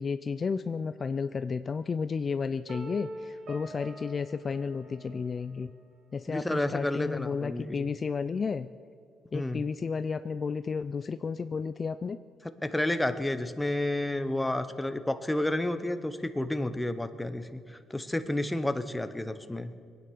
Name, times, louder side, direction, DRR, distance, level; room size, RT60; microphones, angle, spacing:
voice 1, 0.0-5.7 6.1-8.7 9.3-12.2, left 5 dB, 40° left, 12 dB, 0.4 m, -32 dB
sound 1, 2.7-5.6, right 1 dB, 65° right, 2.5 m, -44 dB
voice 2, 6.3-7.9 9.3-9.6 12.6-19.7, left 1 dB, 10° left, 10 dB, 0.9 m, -31 dB
21.5 x 9.4 x 6.3 m, 2.5 s
cardioid pair, 90°, 0 cm